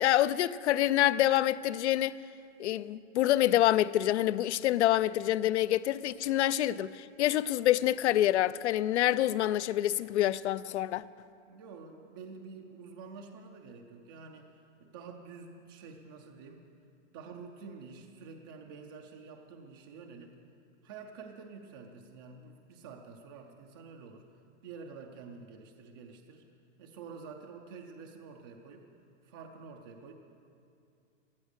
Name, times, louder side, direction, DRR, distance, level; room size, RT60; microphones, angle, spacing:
voice 1, 0.0-2.1 2.6-11.0, left 13 dB, 65° left, 0.5 m, -27 dB
voice 2, 11.5-14.5 14.8-16.6 17.1-20.4 20.8-24.3 24.6-26.4 26.8-28.9 29.2-30.1, right 5 dB, 20° right, 0.4 m, -48 dB
14.0 x 13.0 x 6.5 m
supercardioid pair, 170°, 37 cm